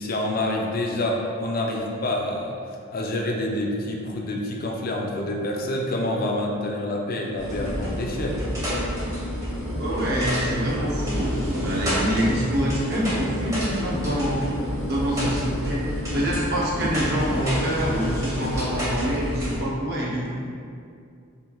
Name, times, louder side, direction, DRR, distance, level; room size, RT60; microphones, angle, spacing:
voice 1, 0.0-2.5 2.9-8.4 15.2-15.3, left 1 dB, 40° left, 0 dB, 0.5 m, -27 dB
sound 1, 7.4-19.6, equal, 15° right, 1.1 m, -29 dB
voice 2, 9.8-20.3, equal, 45° right, -5 dB, 0.7 m, -26 dB
6.9 x 3.2 x 2.3 m, 2.3 s
head